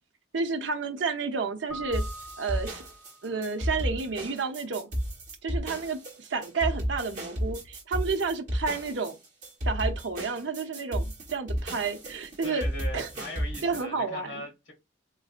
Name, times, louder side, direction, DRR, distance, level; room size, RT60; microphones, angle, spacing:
voice 1, 0.3-2.0 2.4-2.8 3.2-4.9 5.4-9.2 9.6-11.1 11.3-12.7 12.9-13.1 13.6-14.3, right 4 dB, 75° right, 0.7 m, -30 dB
Keyboard (musical), 1.7-3.5, right 2 dB, ahead, 0.5 m, -43 dB
sound 1, 1.9-13.8, equal, 40° right, 1.2 m, -33 dB
voice 2, 12.4-14.7, equal, 75° left, 1.8 m, -40 dB
3.9 x 2.6 x 2.4 m
head